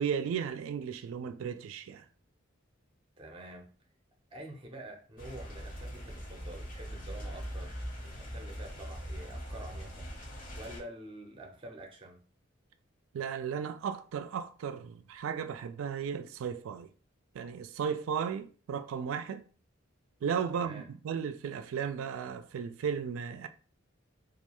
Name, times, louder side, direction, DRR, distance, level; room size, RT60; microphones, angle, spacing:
voice 1, 0.0-2.0 13.1-16.9 17.3-19.4 20.2-23.5, right 7 dB, 85° right, 0.3 m, -35 dB
voice 2, 3.2-3.7 4.3-10.1 10.5-12.2 20.5-20.9, right 1 dB, 25° right, 0.5 m, -47 dB
sound 1, 5.2-10.8, equal, 40° left, 0.6 m, -41 dB
2.4 x 2.2 x 2.9 m
head